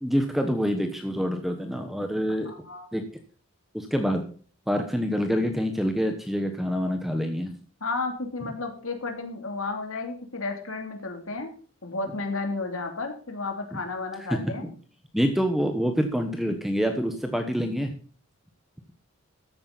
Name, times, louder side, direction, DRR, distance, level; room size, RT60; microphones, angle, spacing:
voice 1, 0.0-2.5 2.9-3.0 3.7-4.2 4.7-7.5 14.3-14.7 15.1-17.9, equal, ahead, 5 dB, 1.0 m, -26 dB
voice 2, 2.4-2.9 7.8-11.5 11.8-14.6, left 3 dB, 75° left, 4 dB, 2.9 m, -32 dB
14.0 x 8.8 x 4.0 m, 0.41 s
head